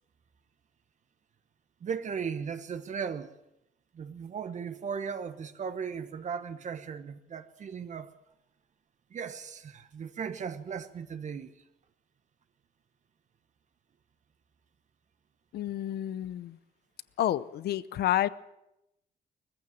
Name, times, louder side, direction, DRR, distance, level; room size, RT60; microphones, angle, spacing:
voice 1, 1.8-3.3 3.9-8.1 9.1-11.5, right 6 dB, 45° right, 1.2 m, -37 dB
voice 2, 15.5-16.6 17.2-18.3, left 13 dB, 70° left, 0.8 m, -29 dB
20.0 x 15.0 x 9.3 m
cardioid pair, 125°, 17 cm